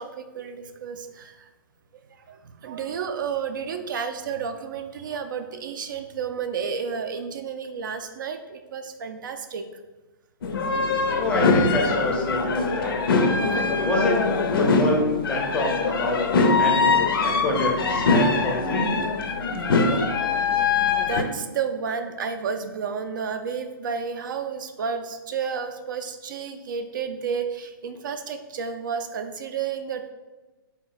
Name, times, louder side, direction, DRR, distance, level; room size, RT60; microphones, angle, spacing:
voice 1, 0.0-1.5 2.3-9.7 16.6-16.8 20.2-30.1, right 6 dB, 60° right, 8 dB, 0.4 m, -31 dB
sound 1, 10.4-21.2, left 4 dB, 80° left, 0.5 m, -22 dB
voice 2, 11.2-13.0 13.8-14.2 14.6-16.2 16.6-16.9 17.2-19.0, left 1 dB, 10° left, -1 dB, 0.5 m, -26 dB
3.9 x 2.1 x 3.8 m, 1.2 s
hypercardioid pair, 155°, 12 cm